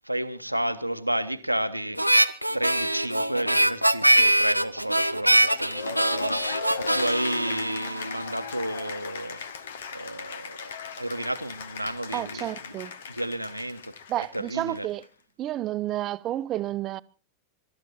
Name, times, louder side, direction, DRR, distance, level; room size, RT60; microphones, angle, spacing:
voice 1, 0.0-2.0 2.5-9.4 9.9-14.9, right 1 dB, 90° right, 1.0 m, -32 dB
Harmonica, 2.0-8.5, right 1 dB, 90° left, 0.7 m, -23 dB
Cheering / Applause, 5.5-15.0, left 6 dB, 60° left, 1.3 m, -38 dB
voice 2, 12.1-12.9 14.1-15.0 15.4-17.0, right 13 dB, 35° right, 0.7 m, -30 dB
24.0 x 13.0 x 4.4 m
figure-of-eight pair, 90°, 0 cm